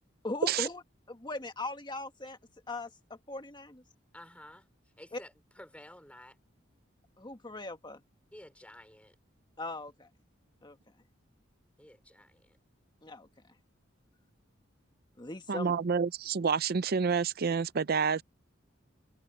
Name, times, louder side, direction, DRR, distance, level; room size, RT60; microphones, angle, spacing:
voice 1, 0.2-0.8 1.1-2.4 2.7-3.8 5.1-5.2 7.2-8.0 9.6-10.1 10.6-10.8 13.0-13.3 15.2-15.7, left 2 dB, 25° left, 1.7 m, -39 dB
voice 2, 4.1-4.7 5.0-6.4 8.3-9.2 11.8-12.6, left 1 dB, 5° left, 4.7 m, -52 dB
voice 3, 15.5-18.2, right 5 dB, 50° right, 0.5 m, -28 dB
head